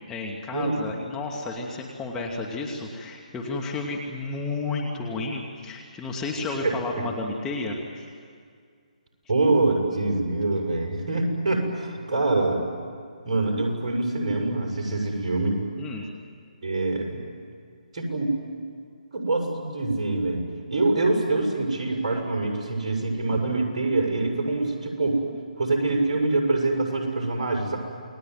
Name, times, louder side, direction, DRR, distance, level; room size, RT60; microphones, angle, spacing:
voice 1, 0.1-8.1 15.8-16.1, left 3 dB, 10° left, -1 dB, 2.5 m, -32 dB
voice 2, 9.3-12.6 13.2-15.6 16.6-17.2 17.9-18.4 19.1-25.2 25.6-27.8, right 2 dB, 50° right, 0 dB, 6.8 m, -25 dB
29.0 x 20.5 x 9.5 m, 2.1 s
figure-of-eight pair, 145°, 4 cm